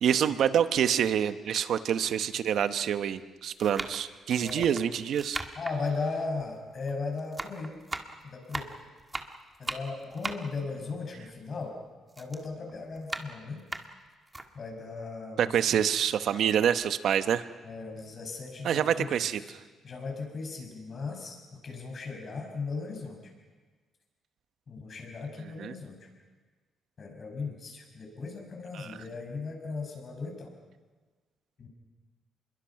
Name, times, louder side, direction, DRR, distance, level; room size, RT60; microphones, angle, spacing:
voice 1, 0.0-5.4 15.4-17.4 18.6-19.4 25.6-25.7 28.7-28.9, right 9 dB, 70° right, 11 dB, 1.0 m, -26 dB
sound 1, 0.8-0.9 1.7-1.8 2.8-3.1 3.6-6.9 7.2-11.8 12.1-14.5 15.0-15.1 15.4-16.3 16.7-16.9, right 2 dB, 20° right, 1.7 m, -39 dB
voice 2, 4.4-4.7 5.6-7.8 8.2-8.7 9.6-11.8 12.2-13.6 14.5-15.8 17.6-19.5 19.8-23.2 24.7-26.1 27.0-30.5 31.6-31.7, left 4 dB, 45° left, 2 dB, 6.2 m, -37 dB
26.0 x 22.5 x 5.9 m, 1.4 s
cardioid pair, 90°, 0 cm